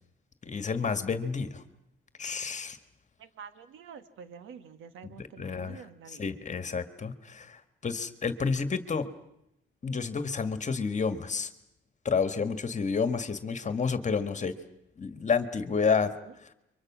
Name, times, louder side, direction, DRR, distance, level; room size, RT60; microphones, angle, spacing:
voice 1, 0.4-1.6 2.2-2.8 5.2-5.8 6.2-9.1 9.8-11.5 12.0-14.5 15.0-16.1 16.4-16.5, left 5 dB, 35° left, 10 dB, 1.9 m, -30 dB
voice 2, 3.2-6.2 16.0-16.3, right 7 dB, 85° right, 11 dB, 1.7 m, -48 dB
29.0 x 24.5 x 6.3 m, 0.85 s
cardioid pair, 90°, 20 cm